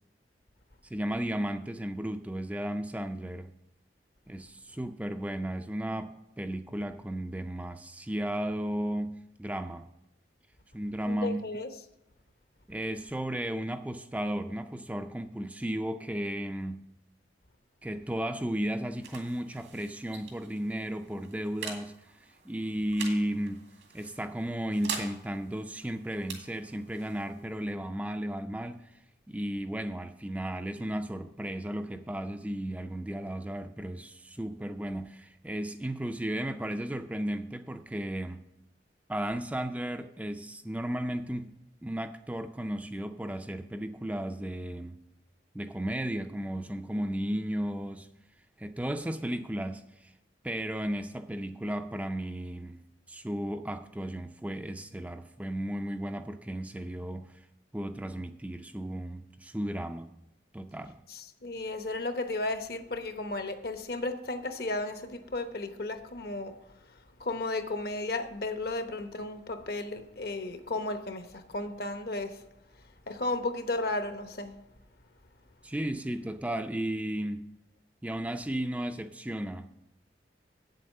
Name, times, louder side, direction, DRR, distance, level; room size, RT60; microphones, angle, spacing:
voice 1, 0.8-3.5 4.3-9.9 10.7-11.4 12.7-16.8 17.8-23.6 23.9-28.9 29.3-38.4 39.1-41.5 41.8-45.0 45.5-48.1 48.6-50.1 50.4-52.8 53.1-57.3 57.7-60.1 60.5-61.0 75.6-77.5 78.0-79.7, right 1 dB, 10° right, 0.3 m, -34 dB
voice 2, 11.0-11.7 61.1-66.5 66.9-72.4 73.1-74.5, left 2 dB, 60° left, 0.9 m, -34 dB
sound 1, 18.3-29.6, right 6 dB, 90° right, 2.1 m, -45 dB
8.5 x 7.7 x 6.4 m
head